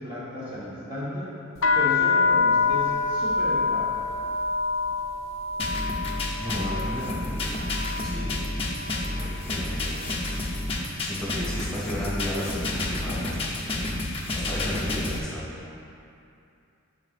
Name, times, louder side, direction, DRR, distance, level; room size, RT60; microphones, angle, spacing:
voice 1, 0.0-1.3 1.7-3.9, equal, 25° right, -11 dB, 1.1 m, -34 dB
sound 1, 1.6-9.5 9.8-10.4 11.0-11.3 11.6-13.1, left 4 dB, 65° left, 0.6 m, -27 dB
sound 2, 5.6-15.2, left 2 dB, 25° left, 0.7 m, -30 dB
voice 2, 6.4-7.6 8.0-10.0 11.0-14.0 14.3-15.5, equal, 5° left, -8 dB, 1.7 m, -34 dB
10.5 x 6.0 x 2.5 m, 2.6 s
head